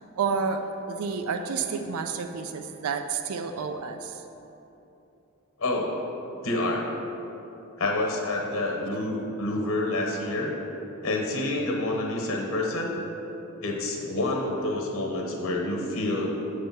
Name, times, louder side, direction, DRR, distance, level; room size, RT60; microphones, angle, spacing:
voice 1, 0.2-4.2, right 5 dB, 80° right, 6 dB, 0.4 m, -30 dB
voice 2, 5.6-6.1 6.4-6.9 7.8-10.5 11.0-13.0 13.6-16.4, left 2 dB, 65° left, 0 dB, 1.0 m, -28 dB
8.0 x 3.3 x 5.8 m, 3.0 s
head